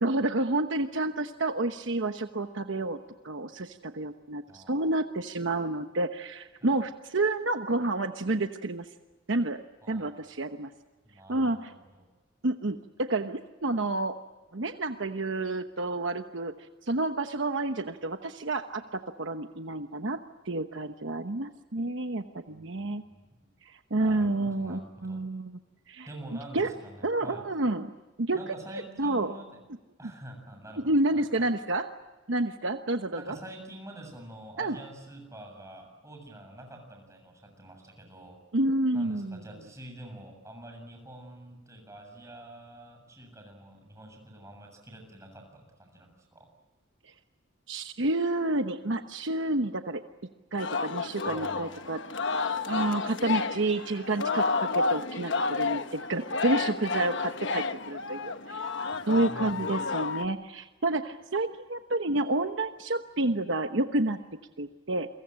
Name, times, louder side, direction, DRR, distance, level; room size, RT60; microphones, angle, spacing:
voice 1, 0.0-3.0 3.2-8.9 9.3-9.6 9.9-10.7 11.3-11.7 12.4-14.2 14.5-16.5 16.8-20.2 20.4-23.0 23.6-25.5 25.9-26.1 26.5-26.7 27.0-27.9 28.2-28.4 29.0-29.3 30.8-31.9 32.3-33.4 34.6-34.8 38.5-39.4 47.7-50.0 50.5-52.0 52.7-58.7 59.1-64.2 64.6-65.1, right 2 dB, 65° right, 7 dB, 1.1 m, -29 dB
voice 2, 4.5-5.0 6.6-6.9 9.8-10.3 11.0-12.1 22.5-23.2 24.0-24.3 24.6-25.2 26.1-27.5 28.3-29.6 30.0-31.5 33.2-38.4 38.9-46.5 51.2-52.0 58.9-59.7, right 1 dB, 15° right, 3 dB, 7.4 m, -47 dB
Singing, 50.6-60.2, left 4 dB, 60° left, 1.2 m, -31 dB
29.0 x 23.5 x 7.7 m, 1.2 s
head